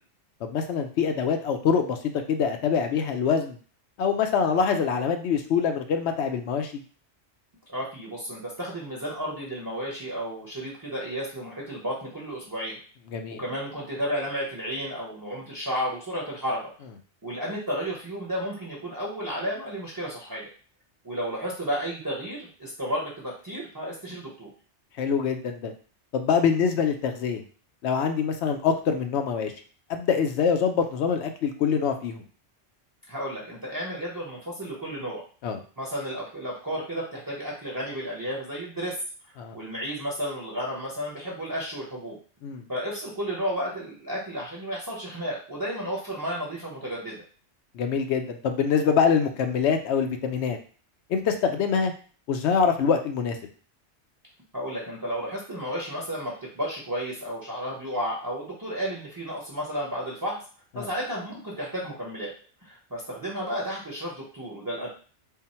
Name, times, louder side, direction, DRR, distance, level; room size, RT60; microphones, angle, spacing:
voice 1, 0.4-2.0 2.3-3.6 4.0-6.7 13.1-13.4 25.0-25.7 26.1-27.4 27.8-29.5 29.9-32.2 35.4-35.6 39.4-39.6 42.4-42.7 47.7-50.6 51.1-51.9 52.3-53.4 60.8-60.9, left 6 dB, 75° left, 5 dB, 0.9 m, -24 dB
voice 2, 7.7-12.8 13.4-16.6 17.2-20.5 21.0-24.5 33.1-35.2 35.8-38.9 39.5-42.2 42.7-47.2 54.5-60.4 60.7-62.3 62.6-64.9, equal, 20° right, -5 dB, 0.7 m, -32 dB
3.7 x 2.1 x 4.2 m, 0.41 s
omnidirectional pair, 1.2 m